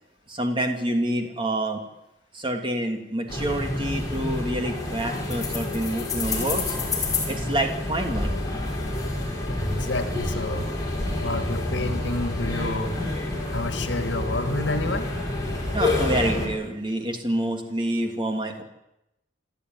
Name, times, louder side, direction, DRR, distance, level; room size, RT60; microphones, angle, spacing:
voice 1, 0.3-1.8 2.3-6.8 7.3-8.3 10.1-10.3 15.7-18.6, right 1 dB, 25° right, 4 dB, 2.9 m, -27 dB
sound 1, 3.3-16.5, left 2 dB, 20° left, 5.8 m, -28 dB
voice 2, 9.5-10.7 11.1-13.0 13.5-15.1, left 2 dB, 80° left, 8 dB, 2.1 m, -29 dB
28.0 x 12.5 x 9.7 m, 0.89 s
head